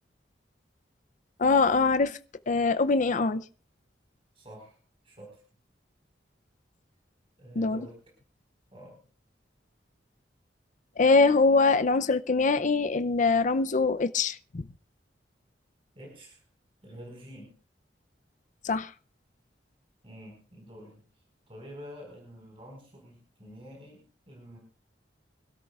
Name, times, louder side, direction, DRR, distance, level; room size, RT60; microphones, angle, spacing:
voice 1, 1.4-2.2 2.5-3.4 7.6-7.8 11.0-14.7 18.6-18.9, left 4 dB, 45° left, 0.5 m, -23 dB
voice 2, 4.3-4.8 5.0-5.4 7.4-8.0 8.7-9.0 15.9-16.4 16.8-17.6 20.0-21.0 21.5-24.6, equal, 30° right, 4.8 m, -47 dB
25.0 x 13.0 x 2.4 m
head